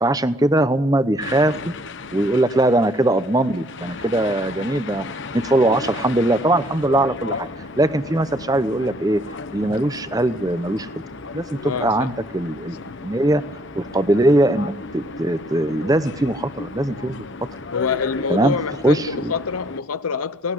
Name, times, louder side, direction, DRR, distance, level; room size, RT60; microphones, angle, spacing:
voice 1, 0.0-1.7 2.1-5.0 5.3-7.5 7.8-9.2 9.5-10.9 11.3-12.8 13.0-13.4 13.7-17.1 18.3-18.6 18.8-19.3, right 1 dB, 15° right, 0.8 m, -20 dB
sound 1, 1.2-19.8, left 4 dB, 55° left, 0.9 m, -35 dB
voice 2, 11.6-12.1 12.8-13.0 17.7-20.5, left 5 dB, 80° left, 0.7 m, -26 dB
19.0 x 17.5 x 10.0 m
head